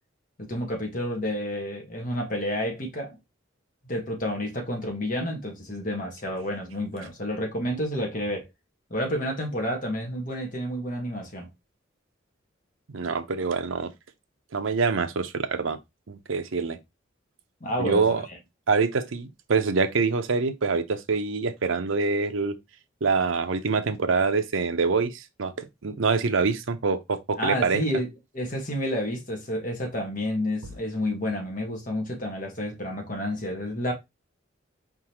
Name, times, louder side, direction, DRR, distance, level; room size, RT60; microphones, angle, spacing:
voice 1, 0.4-3.2 3.8-8.5 8.9-11.5 17.6-18.0 27.4-28.1 28.3-33.9, equal, 40° left, 1.6 m, -30 dB
voice 2, 12.9-13.9 14.5-15.8 16.1-16.8 17.8-18.2 18.7-22.6 23.0-27.8, right 4 dB, 80° right, 0.7 m, -25 dB
4.7 x 3.7 x 2.9 m
head